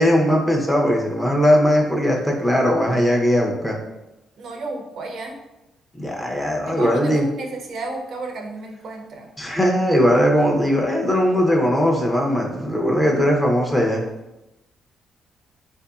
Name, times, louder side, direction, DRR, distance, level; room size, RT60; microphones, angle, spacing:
voice 1, 0.0-3.8 6.0-7.3 9.4-14.0, equal, 10° left, -1 dB, 0.7 m, -19 dB
voice 2, 4.4-5.4 6.6-9.4, right 2 dB, 65° right, 2 dB, 0.5 m, -32 dB
3.7 x 2.6 x 2.3 m, 0.96 s
cardioid pair, 90°, 0 cm